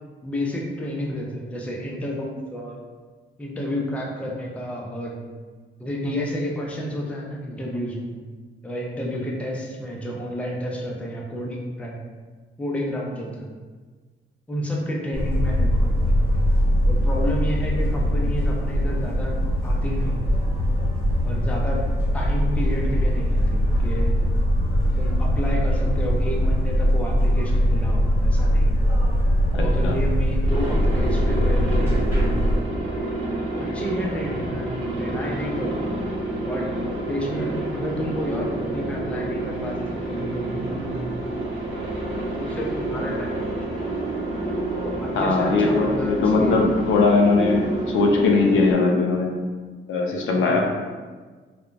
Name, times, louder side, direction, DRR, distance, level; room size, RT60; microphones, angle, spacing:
voice 1, 0.2-2.8 3.4-5.2 5.8-8.2 8.6-12.0 12.6-13.5 14.5-16.2 16.9-19.3 19.6-20.2 21.2-21.8 22.1-24.2 25.0-28.8 29.5-32.4 33.6-36.0 36.5-36.7 37.1-39.8 40.1-41.3 42.4-43.8 44.8-46.6 50.4-50.6, equal, 5° left, -2 dB, 0.3 m, -30 dB
sound 1, 15.1-32.6, equal, 10° right, 1.0 m, -21 dB
voice 2, 29.5-29.9 45.1-49.4 49.9-50.7, left 3 dB, 80° left, 1 dB, 0.5 m, -20 dB
Aircraft, 30.4-48.7, right 2 dB, 75° right, 1.1 m, -29 dB
3.1 x 2.0 x 2.4 m, 1.4 s
cardioid pair, 135°, 20 cm